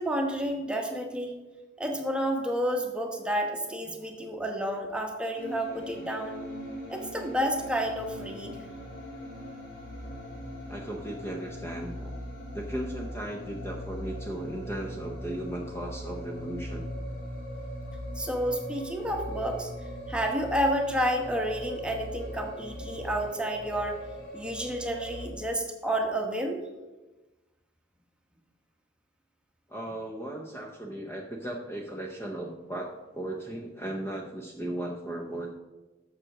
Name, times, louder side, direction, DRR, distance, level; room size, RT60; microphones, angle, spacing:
voice 1, 0.0-1.3 1.8-6.3 6.9-8.6 18.2-19.7 20.1-24.0 24.3-26.6, equal, 5° right, 2 dB, 1.1 m, -30 dB
sound 1, 5.4-25.3, equal, 80° left, 3.0 m, -40 dB
voice 2, 10.7-12.1 12.5-16.9 29.7-35.5, right 1 dB, 15° left, 0 dB, 0.7 m, -36 dB
7.4 x 6.5 x 6.0 m, 1.1 s
head